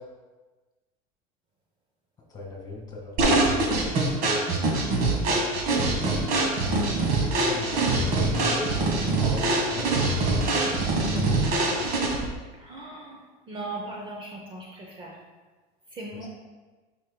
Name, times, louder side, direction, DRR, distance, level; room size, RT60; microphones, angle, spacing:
voice 1, 2.3-3.1 3.5-3.9 6.6-10.3 16.2-16.3, left 2 dB, 20° left, -1 dB, 1.9 m, -37 dB
sound 1, 3.2-12.3, right 2 dB, 50° right, 1.3 m, -24 dB
voice 2, 12.6-13.2 13.5-15.2 15.9-16.3, right 2 dB, 25° right, -1 dB, 0.7 m, -38 dB
8.6 x 5.3 x 2.2 m, 1.3 s
supercardioid pair, 135°, 18 cm